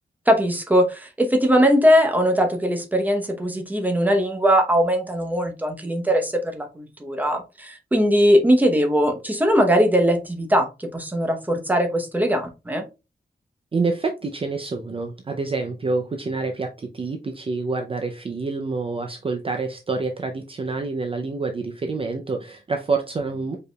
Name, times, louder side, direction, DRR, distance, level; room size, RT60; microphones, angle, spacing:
voice 1, 0.3-12.8, equal, 10° right, 4 dB, 0.9 m, -20 dB
voice 2, 13.7-23.6, right 3 dB, 35° right, 4 dB, 0.5 m, -27 dB
4.8 x 4.8 x 2.3 m, 0.28 s
wide cardioid pair, 175°, 17 cm